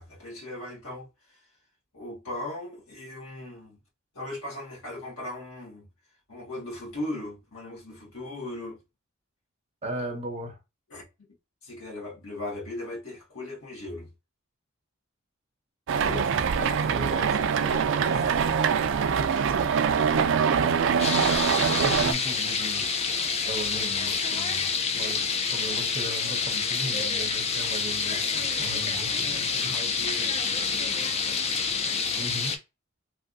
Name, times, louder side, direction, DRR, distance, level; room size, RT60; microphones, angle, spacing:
voice 1, 0.0-1.4 1.9-3.8 4.1-5.9 6.3-8.8 10.9-11.1 11.6-14.1 16.0-18.5 29.7-31.0, left 1 dB, 85° left, 1.5 m, -38 dB
voice 2, 9.8-10.6 21.6-29.8 32.2-32.6, right 1 dB, 30° right, 0.7 m, -38 dB
sound 1, 15.9-22.1, right 6 dB, 60° right, 0.3 m, -24 dB
sound 2, 21.0-32.6, left 5 dB, 30° left, 0.4 m, -28 dB
3.3 x 2.6 x 2.5 m
head